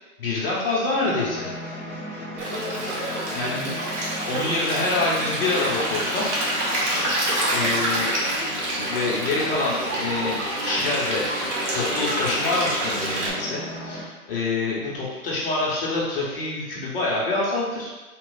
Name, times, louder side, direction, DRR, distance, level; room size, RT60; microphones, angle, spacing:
voice 1, 0.2-1.5 3.3-6.3 7.5-8.1 8.9-11.2 11.7-17.9, left 3 dB, 40° left, -5 dB, 0.9 m, -26 dB
sound 1, 1.0-14.0, left 1 dB, ahead, 0.6 m, -36 dB
Stream, 2.4-13.3, right 1 dB, 50° right, 1.4 m, -27 dB
4.0 x 2.3 x 3.9 m, 1.2 s
hypercardioid pair, 145°, 45 cm